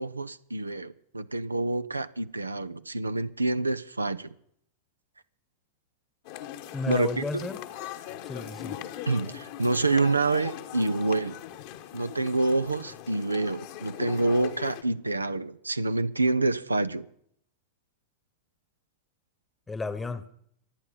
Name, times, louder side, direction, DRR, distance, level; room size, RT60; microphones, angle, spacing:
voice 1, 0.0-4.3 6.9-7.4 9.1-11.4 11.9-17.0, right 2 dB, 80° right, 0.6 m, -27 dB
sound 1, 6.2-14.8, left 12 dB, 50° left, 1.3 m, -40 dB
voice 2, 6.7-7.6 8.2-8.8 19.7-20.3, left 3 dB, 10° left, 1.2 m, -33 dB
24.5 x 9.4 x 5.5 m
figure-of-eight pair, 90°, 0 cm